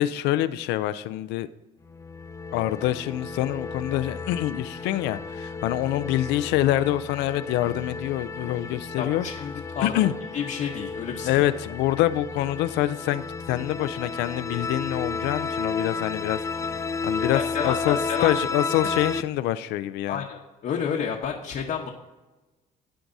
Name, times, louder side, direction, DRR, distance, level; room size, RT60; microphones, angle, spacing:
voice 1, 0.0-1.5 2.5-9.3 9.8-10.1 11.2-16.4 17.0-20.2, left 13 dB, 90° left, 14 dB, 0.4 m, -26 dB
sound 1, 1.8-19.2, left 4 dB, 15° left, 0.4 m, -33 dB
voice 2, 9.0-10.0 10.3-11.3 16.6-16.8 17.3-18.4 20.1-21.9, left 7 dB, 55° left, -1 dB, 0.9 m, -30 dB
14.0 x 4.7 x 2.7 m, 1.1 s
cardioid pair, 110°, 17 cm